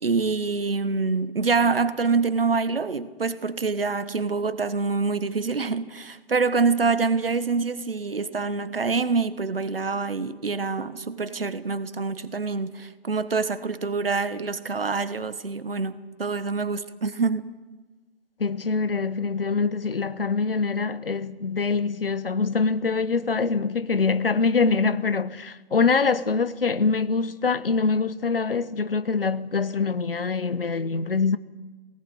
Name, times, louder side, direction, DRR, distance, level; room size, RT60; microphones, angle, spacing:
voice 1, 0.0-17.5, right 4 dB, 70° right, 1.3 m, -26 dB
voice 2, 18.4-31.4, left 4 dB, 65° left, 1.1 m, -24 dB
19.5 x 18.0 x 8.0 m
figure-of-eight pair, 135°, 30 cm